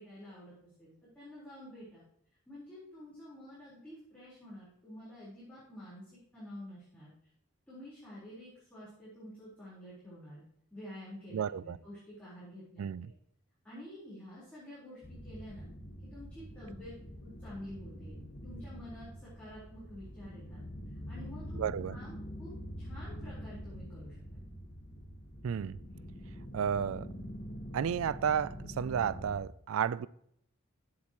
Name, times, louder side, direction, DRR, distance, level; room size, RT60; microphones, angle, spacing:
voice 1, 0.0-2.0 2.5-7.1 7.7-10.4 10.7-13.1 13.6-15.7 16.0-18.2 18.4-24.4, equal, 5° left, 4.1 m, -49 dB
voice 2, 11.3-11.8 12.8-13.1 21.5-22.0 25.4-25.8 26.5-27.1 27.7-30.1, right 8 dB, 80° right, 0.3 m, -32 dB
sound 1, 15.0-29.4, equal, 40° left, 1.5 m, -45 dB
15.0 x 7.4 x 3.0 m
head